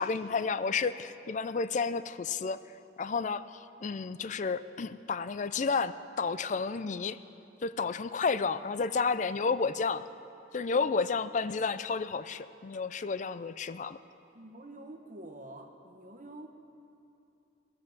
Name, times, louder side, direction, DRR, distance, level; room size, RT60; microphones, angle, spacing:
voice 1, 0.0-2.6 3.0-7.2 7.6-10.1 10.5-14.0, left 4 dB, 40° left, 14 dB, 0.4 m, -31 dB
voice 2, 14.3-16.5, right 1 dB, 45° right, 3 dB, 1.2 m, -47 dB
18.0 x 7.4 x 7.7 m, 2.7 s
head